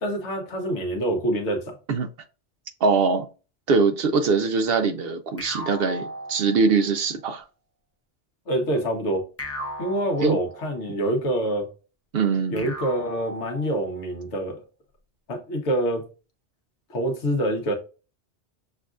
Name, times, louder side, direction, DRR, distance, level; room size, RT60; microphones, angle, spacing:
voice 1, 0.0-1.8 8.5-9.3 9.8-11.7 12.5-14.6 15.3-16.1 16.9-17.7, right 1 dB, 85° left, 1.4 m, -26 dB
voice 2, 2.8-3.3 3.7-7.4 10.2-10.4 12.1-12.7, right 4 dB, 65° right, 0.7 m, -22 dB
sound 1, 5.4-7.0 9.4-11.0 12.6-14.1, equal, 15° left, 0.5 m, -37 dB
6.5 x 2.4 x 2.4 m
omnidirectional pair, 1.2 m